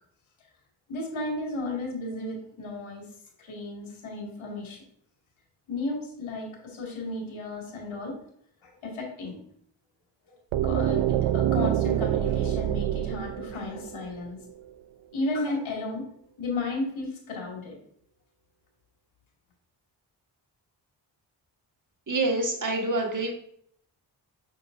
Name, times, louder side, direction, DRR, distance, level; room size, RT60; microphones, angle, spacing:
voice 1, 0.9-3.1 3.4-4.8 5.7-8.1 8.6-9.4 10.6-14.4 15.1-16.0 16.4-17.8, left 2 dB, 80° left, -1 dB, 2.5 m, -34 dB
sound 1, 10.5-14.4, right 12 dB, 75° right, 0.6 m, -26 dB
voice 2, 22.1-23.3, right 2 dB, 40° right, 0 dB, 1.9 m, -26 dB
6.5 x 6.5 x 2.7 m, 0.66 s
cardioid pair, 50°, 47 cm